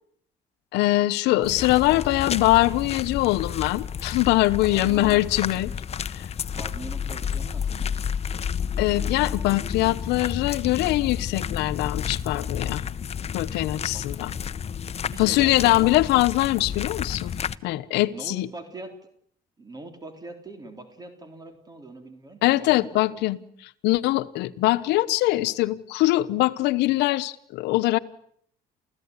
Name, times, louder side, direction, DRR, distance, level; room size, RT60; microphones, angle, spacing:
voice 1, 0.7-5.7 6.1-6.2 8.8-12.8 13.3-14.3 15.2-18.5 22.4-28.0, left 18 dB, 90° left, 14 dB, 1.0 m, -22 dB
voice 2, 1.3-1.6 4.7-5.2 6.5-8.1 13.9-14.1 15.0-16.0 18.1-18.9 19.6-23.3, right 2 dB, 25° right, 7 dB, 3.7 m, -41 dB
sound 1, 1.4-17.6, left 7 dB, 40° left, 1.0 m, -31 dB
29.5 x 15.0 x 9.7 m, 0.68 s
cardioid pair, 110°, 17 cm